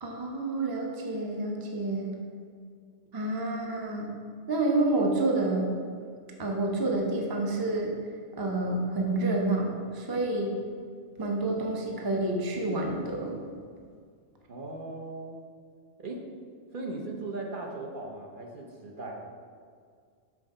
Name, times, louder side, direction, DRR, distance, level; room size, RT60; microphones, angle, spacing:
voice 1, 0.0-2.1 3.1-4.1 4.5-5.7 6.4-7.9 8.4-10.5 11.2-13.4, right 2 dB, 25° right, 0 dB, 0.5 m, -28 dB
voice 2, 14.5-15.4 16.0-16.3 16.7-19.2, right 2 dB, 50° right, -1 dB, 0.8 m, -38 dB
5.9 x 3.9 x 5.2 m, 2.1 s
omnidirectional pair, 1.2 m